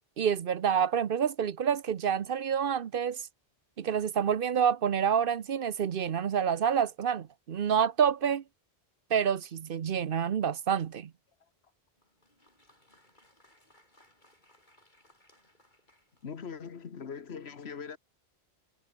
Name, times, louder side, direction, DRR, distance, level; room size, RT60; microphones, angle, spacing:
voice 1, 0.2-3.2 3.8-8.4 9.1-11.1, right 8 dB, 60° right, 0.9 m, -28 dB
Applause, 12.0-16.8, left 1 dB, 50° left, 8.0 m, -65 dB
voice 2, 16.2-18.0, left 6 dB, 80° left, 1.6 m, -41 dB
omnidirectional pair, 1.1 m